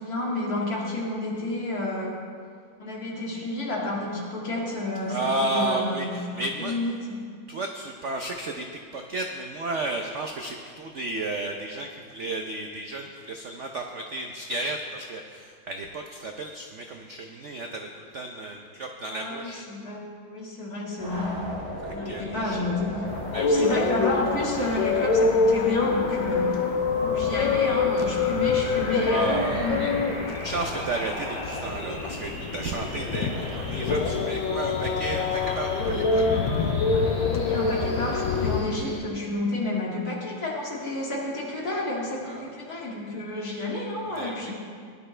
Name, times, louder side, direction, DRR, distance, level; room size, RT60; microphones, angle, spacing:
voice 1, 0.0-2.2 2.8-6.1 6.3-7.3 19.1-21.4 21.9-23.1 23.5-26.6 27.0-29.9 36.9-44.5, left 2 dB, 50° left, -4 dB, 2.8 m, -30 dB
voice 2, 5.1-6.8 7.5-8.7 8.9-19.7 21.8-22.6 23.3-23.8 29.0-29.9 30.3-36.7 42.3-42.5 44.1-44.5, right 2 dB, 65° right, 3 dB, 0.7 m, -33 dB
sound 1, 21.0-39.0, equal, 20° left, 4.1 m, -36 dB
sound 2, 23.1-38.6, left 4 dB, 80° left, 1.5 m, -26 dB
17.5 x 11.0 x 3.3 m, 2.1 s
omnidirectional pair, 2.1 m